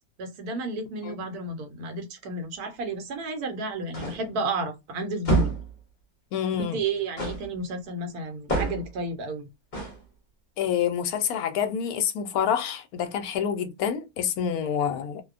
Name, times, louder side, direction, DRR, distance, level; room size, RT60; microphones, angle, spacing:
voice 1, 0.2-5.5 6.7-9.5, right 3 dB, 70° right, 1.2 m, -32 dB
sound 1, 3.9-4.3 5.2-5.7 7.2-7.5 8.5-9.0 9.7-10.0, right 2 dB, 35° left, 0.8 m, -27 dB
voice 2, 6.3-6.8 10.6-15.2, left 8 dB, 70° left, 1.0 m, -27 dB
2.7 x 2.1 x 2.4 m
omnidirectional pair, 1.7 m